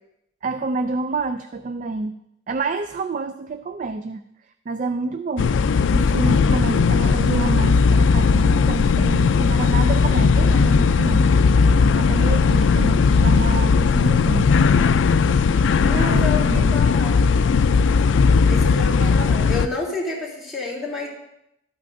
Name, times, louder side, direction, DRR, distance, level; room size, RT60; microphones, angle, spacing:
voice 1, 0.4-2.2 2.5-4.2 4.7-11.3 11.6-14.6 15.9-16.8 19.0-19.1, right 3 dB, 40° right, 10 dB, 0.3 m, -28 dB
sound 1, 5.4-19.7, left 5 dB, 75° left, 0.3 m, -17 dB
voice 2, 15.8-17.2 18.5-21.1, left 3 dB, ahead, -7 dB, 3.0 m, -29 dB
12.5 x 8.9 x 2.6 m, 0.82 s
head